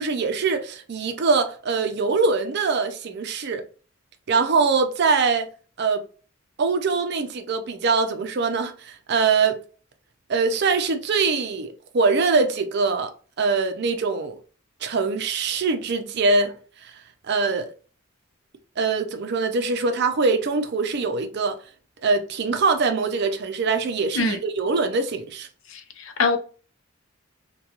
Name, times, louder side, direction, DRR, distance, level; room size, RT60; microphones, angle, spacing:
voice 1, 0.0-3.7 4.3-5.5 5.8-6.0 6.6-9.6 10.3-14.4 14.8-16.9 17.2-17.7 18.8-21.6 22.0-25.5, right 4 dB, 50° right, 0.4 m, -23 dB
voice 2, 25.7-26.4, left 4 dB, 65° left, 0.6 m, -24 dB
2.9 x 2.3 x 2.3 m
head